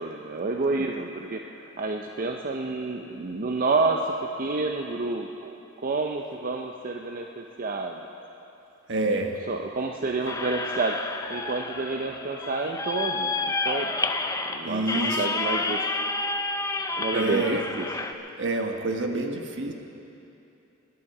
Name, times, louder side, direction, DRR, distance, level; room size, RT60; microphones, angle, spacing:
voice 1, 0.0-5.6 5.8-8.0 9.1-9.2 9.5-13.9 14.5-14.8 15.2-16.0 17.0-17.8, right 3 dB, 45° right, 2 dB, 0.6 m, -29 dB
voice 2, 8.9-9.4 14.6-15.4 17.1-17.6 18.4-19.7, right 2 dB, 60° right, 3 dB, 1.3 m, -27 dB
sound 1, 10.3-18.1, left 3 dB, 15° left, 0.6 m, -30 dB
22.0 x 11.5 x 4.9 m, 2.9 s
head